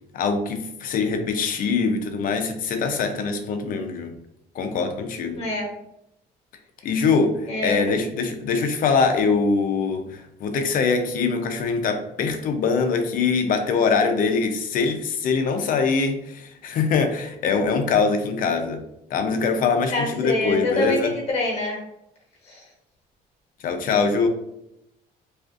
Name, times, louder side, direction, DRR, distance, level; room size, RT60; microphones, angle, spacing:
voice 1, 0.1-4.1 4.5-5.4 6.8-18.8 19.1-21.1 23.6-24.3, left 5 dB, 55° left, 6 dB, 0.4 m, -23 dB
voice 2, 5.4-5.7 7.5-7.8 19.9-21.8 22.4-22.6, left 1 dB, 40° left, -2 dB, 0.9 m, -25 dB
2.4 x 2.4 x 2.4 m, 0.80 s
cardioid pair, 110°, 17 cm